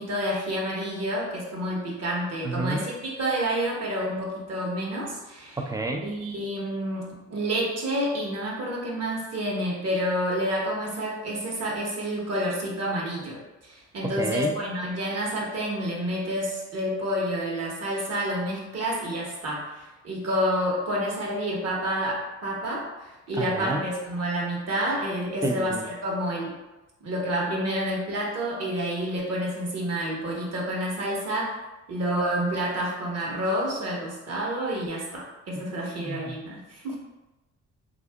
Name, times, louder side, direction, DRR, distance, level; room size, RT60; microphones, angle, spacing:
voice 1, 0.0-5.6 6.0-26.5 27.0-31.5 31.9-37.0, equal, 55° right, -3 dB, 1.0 m, -29 dB
voice 2, 2.4-2.8 5.6-6.1 14.0-14.5 23.4-23.8 25.4-25.8 35.6-35.8 36.0-36.4, right 2 dB, 10° right, 3 dB, 0.3 m, -30 dB
2.7 x 2.5 x 3.3 m, 1.1 s
cardioid pair, 90°, 30 cm